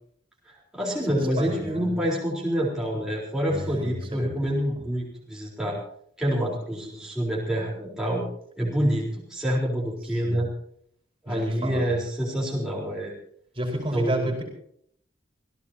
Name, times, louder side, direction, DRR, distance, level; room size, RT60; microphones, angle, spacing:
voice 1, 0.7-5.8 6.2-8.2 8.6-10.5 11.2-13.1 13.9-14.3, equal, 5° right, -5 dB, 4.0 m, -27 dB
voice 2, 1.4-2.0 2.9-3.0 3.5-4.5 4.8-4.9 10.2-10.4 11.3-12.0 13.5-14.4, right 1 dB, 30° right, 1 dB, 4.7 m, -31 dB
26.5 x 16.5 x 2.9 m, 0.66 s
head